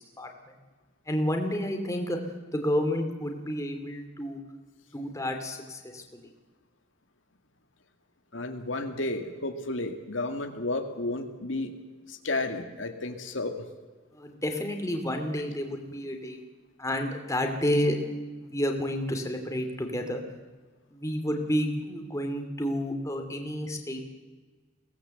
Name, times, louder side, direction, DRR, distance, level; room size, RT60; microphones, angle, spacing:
voice 1, 1.1-2.2 2.5-4.4 4.9-6.2 14.1-16.4 16.8-18.0 18.4-20.2 20.9-24.0, equal, 15° left, 4 dB, 2.7 m, -30 dB
voice 2, 8.3-11.7 12.1-13.6, left 2 dB, 80° left, 6 dB, 2.2 m, -32 dB
23.0 x 18.0 x 7.9 m, 1.4 s
head